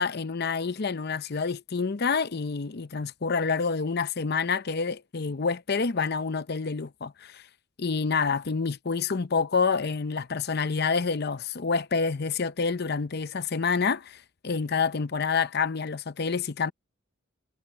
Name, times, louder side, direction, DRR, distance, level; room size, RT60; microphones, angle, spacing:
voice 1, 0.0-7.4 7.8-16.7, left 5 dB, 55° left, 0.7 m, -28 dB
head